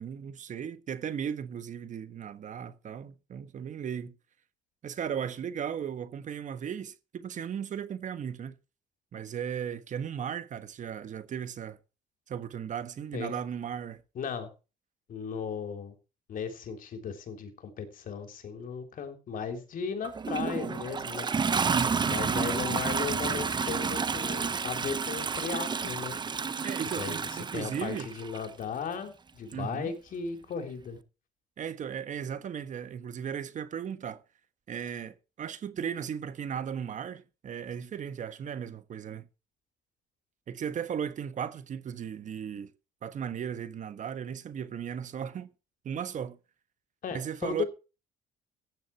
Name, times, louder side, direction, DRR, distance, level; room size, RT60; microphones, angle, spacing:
voice 1, 0.0-4.1 4.8-8.6 9.1-11.8 12.3-14.0 21.5-22.2 26.6-28.1 29.5-29.9 31.6-34.2 34.7-39.3 40.5-42.7 43.0-45.5 45.8-46.4 47.1-47.6, right 8 dB, 45° right, 1.5 m, -36 dB
voice 2, 14.2-14.5 15.1-16.0 16.3-21.3 22.1-26.2 27.0-31.0 47.0-47.7, left 6 dB, 55° left, 3.6 m, -36 dB
Toilet flush, 20.0-28.5 29.5-29.6, right 5 dB, 25° right, 1.0 m, -30 dB
15.5 x 10.0 x 4.6 m
cardioid pair, 110°, 17 cm